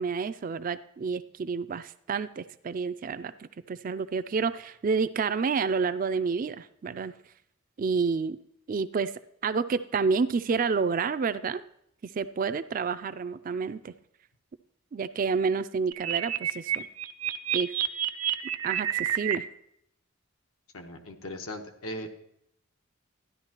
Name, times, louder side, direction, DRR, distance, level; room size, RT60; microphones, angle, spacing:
voice 1, 0.0-3.3 3.7-7.1 7.8-8.4 8.7-9.1 9.4-11.6 12.1-13.9 14.9-16.9 17.5-17.7 18.6-19.4, right 5 dB, 40° right, 13 dB, 0.3 m, -29 dB
sound 1, 15.9-19.4, right 11 dB, 90° right, 0.5 m, -29 dB
voice 2, 20.7-22.1, left 1 dB, 85° left, 4 dB, 1.1 m, -38 dB
13.0 x 10.5 x 2.9 m, 0.74 s
head